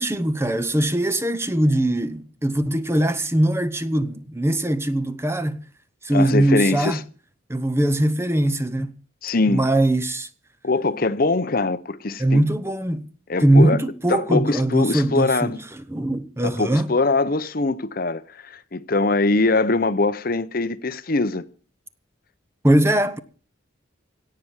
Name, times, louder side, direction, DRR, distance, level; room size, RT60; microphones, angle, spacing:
voice 1, 0.0-5.6 6.0-7.0 7.5-8.9 9.5-10.3 12.2-13.1 13.4-15.5 15.9-16.9 22.6-23.2, right 1 dB, 10° right, 0.8 m, -21 dB
voice 2, 6.1-7.0 9.2-9.6 10.6-12.4 13.3-13.8 14.1-15.6 16.4-21.4, left 3 dB, 45° left, 0.8 m, -22 dB
17.0 x 6.0 x 9.7 m
head